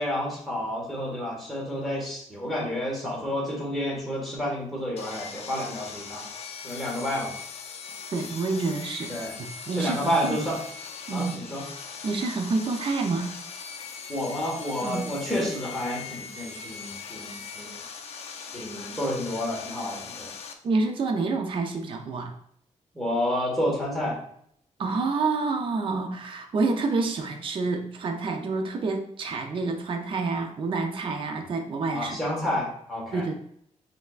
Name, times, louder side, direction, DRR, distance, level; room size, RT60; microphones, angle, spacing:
voice 1, 0.0-6.2 6.6-7.4 9.1-9.3 9.8-10.6 11.1-11.6 14.1-17.7 18.5-20.3 22.9-24.2 31.9-33.4, left 1 dB, ahead, -4 dB, 1.5 m, -30 dB
Sawing, 5.0-20.5, left 5 dB, 55° left, 0.5 m, -40 dB
voice 2, 8.1-10.0 10.2-10.4 11.1-11.4 12.0-13.3 14.8-15.1 20.6-22.4 24.8-32.2 33.1-33.4, right 3 dB, 40° right, 4 dB, 0.5 m, -28 dB
5.6 x 3.4 x 2.4 m, 0.67 s
wide cardioid pair, 170°, 13 cm